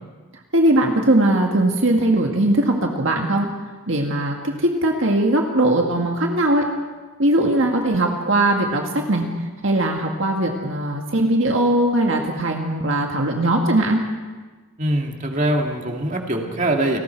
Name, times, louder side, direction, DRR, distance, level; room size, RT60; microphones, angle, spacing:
voice 1, 0.5-3.5 3.9-6.6 7.2-9.2 9.6-14.0, right 1 dB, 60° right, 2 dB, 1.8 m, -19 dB
voice 2, 14.8-17.0, right 1 dB, 35° right, 2 dB, 2.3 m, -22 dB
30.0 x 20.0 x 4.6 m, 1.3 s
head